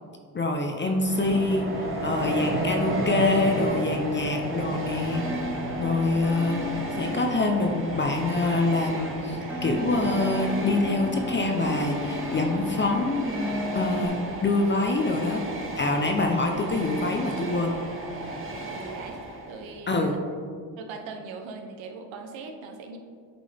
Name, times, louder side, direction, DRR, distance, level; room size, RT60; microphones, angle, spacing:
voice 1, 0.3-5.3 5.8-6.6 6.9-13.3 13.7-15.4 15.8-17.7 19.9-20.1, left 2 dB, 25° left, 3 dB, 0.6 m, -25 dB
Train, 0.8-19.8, right 1 dB, 25° right, 1.1 m, -33 dB
voice 2, 0.8-1.4 18.7-19.2 19.5-20.2 20.8-23.0, right 4 dB, 75° right, 5 dB, 0.9 m, -41 dB
sound 1, 5.1-14.1, left 2 dB, 5° right, 1.1 m, -35 dB
8.5 x 3.7 x 3.4 m, 2.1 s
supercardioid pair, 80°, 46 cm